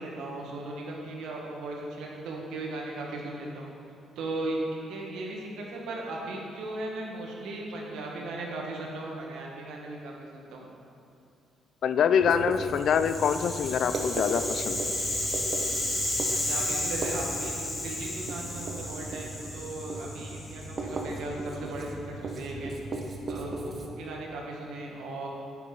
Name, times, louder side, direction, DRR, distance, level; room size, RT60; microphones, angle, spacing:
voice 1, 0.0-3.7 4.2-10.7 16.3-22.9 23.3-25.3, right 2 dB, 85° right, -1 dB, 1.4 m, -37 dB
voice 2, 11.8-14.9, left 7 dB, 65° left, 11 dB, 0.3 m, -25 dB
Writing, 12.2-23.9, right 2 dB, 45° right, 0.9 m, -37 dB
Rattle (instrument), 12.8-21.0, left 1 dB, 25° left, 1.6 m, -33 dB
9.1 x 6.0 x 3.8 m, 2.7 s
cardioid pair, 90°, 0 cm